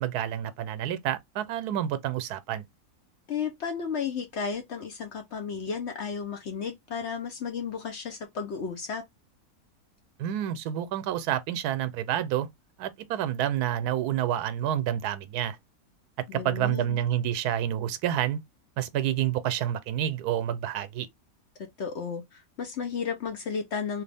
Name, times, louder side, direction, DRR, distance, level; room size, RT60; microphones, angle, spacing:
voice 1, 0.0-2.6 10.2-12.5 12.8-15.6 16.3-18.4 18.8-21.1, right 11 dB, 85° right, 1.1 m, -28 dB
voice 2, 3.3-9.0 16.3-17.0 21.8-24.0, left 6 dB, 55° left, 0.8 m, -33 dB
3.2 x 2.4 x 3.4 m
omnidirectional pair, 1.6 m